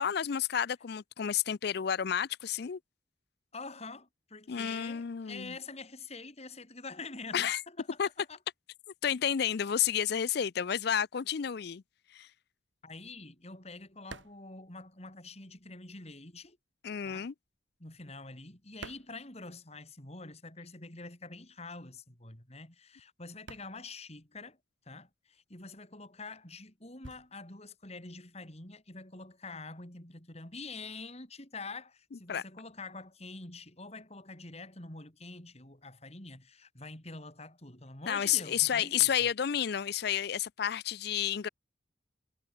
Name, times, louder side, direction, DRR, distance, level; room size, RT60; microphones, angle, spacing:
voice 1, 0.0-2.8 4.5-5.5 7.3-7.6 8.0-8.1 9.0-11.8 12.1-12.3 16.8-17.3 32.3-32.4 38.1-41.5, left 9 dB, 60° left, 0.4 m, -30 dB
voice 2, 3.5-8.4 12.8-16.6 17.0-17.3 17.8-24.6 24.9-39.1, left 3 dB, 35° left, 4.1 m, -46 dB
sound 1, 12.3-15.6 15.9-20.0 20.3-29.0, right 3 dB, 90° right, 3.9 m, -54 dB
head